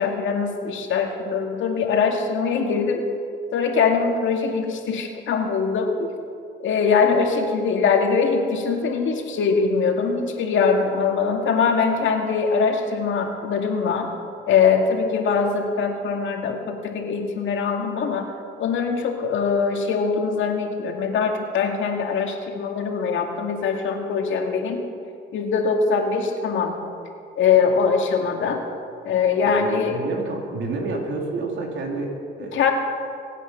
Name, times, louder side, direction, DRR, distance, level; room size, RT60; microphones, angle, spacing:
voice 1, 0.0-3.0 3.5-6.1 6.6-14.1 14.5-18.3 18.6-24.8 25.3-26.8 27.4-28.6 29.0-30.0 32.5-32.7, left 5 dB, 75° left, 3 dB, 2.2 m, -22 dB
voice 2, 29.4-32.7, right 3 dB, 70° right, 1 dB, 3.2 m, -30 dB
23.5 x 9.2 x 5.7 m, 2.5 s
cardioid pair, 90°, 20 cm